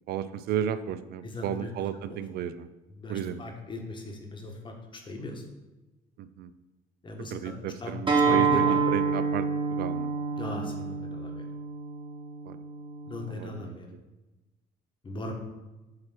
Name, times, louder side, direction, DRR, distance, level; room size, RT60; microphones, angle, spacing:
voice 1, 0.1-2.7 3.1-3.4 6.4-6.5 7.3-9.5 9.7-10.1 12.5-12.6 13.3-13.8, right 9 dB, 65° right, 12 dB, 0.4 m, -33 dB
voice 2, 1.3-1.7 2.1-2.2 3.0-3.8 4.3-4.5 5.1-5.3 7.0-7.5 7.8-7.9 8.3-8.8 10.4-11.3 13.1-13.9 15.1-15.3, left 2 dB, 30° left, 3 dB, 1.2 m, -37 dB
Acoustic guitar, 8.1-13.3, right 5 dB, 30° right, 1.4 m, -27 dB
7.6 x 3.0 x 6.0 m, 1.1 s
cardioid pair, 110°, 17 cm